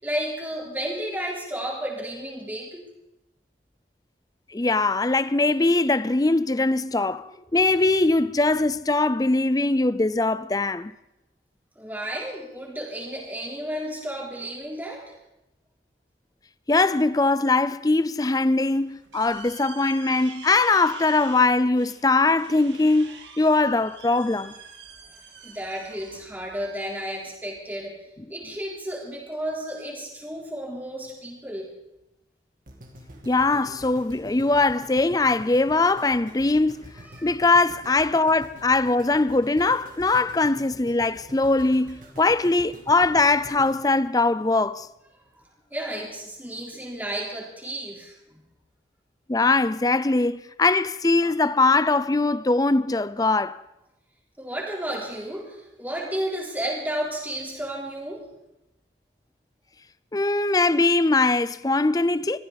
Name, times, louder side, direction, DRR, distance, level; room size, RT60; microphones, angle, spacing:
voice 1, 0.0-2.8 11.8-15.1 25.1-25.2 25.4-28.0 28.3-31.7 37.1-37.4 45.7-48.4 54.4-58.2, right 1 dB, 10° right, 3.7 m, -32 dB
voice 2, 4.5-10.9 16.7-24.5 33.3-36.8 37.2-44.9 49.3-53.6 60.1-62.4, left 3 dB, 20° left, 0.5 m, -21 dB
sound 1, 18.5-27.6, right 6 dB, 85° right, 2.5 m, -46 dB
sound 2, 32.7-44.9 45.4-45.5, right 1 dB, 50° right, 2.6 m, -46 dB
23.0 x 15.0 x 4.1 m
head